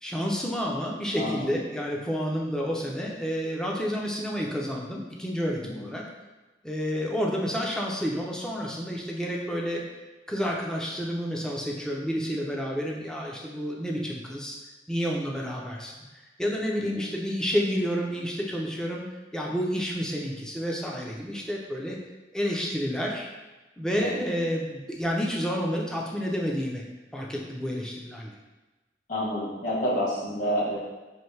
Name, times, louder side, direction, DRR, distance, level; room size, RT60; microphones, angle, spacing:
voice 1, 0.0-6.0 6.6-9.8 10.3-14.6 14.9-19.0 19.3-22.0 22.3-23.3 23.8-26.8 27.1-28.3, equal, 5° left, -2 dB, 0.4 m, -30 dB
voice 2, 1.2-1.6 5.6-5.9 16.8-17.0 24.0-24.2 29.1-30.8, equal, 45° left, -7 dB, 1.4 m, -29 dB
4.3 x 2.6 x 3.2 m, 1.2 s
head